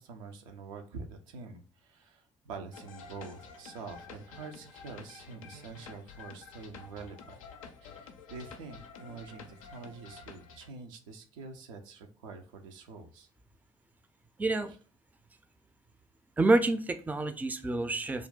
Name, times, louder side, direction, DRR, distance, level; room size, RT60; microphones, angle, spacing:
voice 1, 0.0-7.4 7.8-13.3 14.6-14.8, right 4 dB, 75° right, 4 dB, 0.5 m, -46 dB
sound 1, 2.7-10.7, left 5 dB, 80° left, 0.4 m, -50 dB
voice 2, 14.4-14.7 16.4-18.3, right 2 dB, 10° right, 9 dB, 0.4 m, -27 dB
2.4 x 2.2 x 3.7 m, 0.39 s
figure-of-eight pair, 45°, 17 cm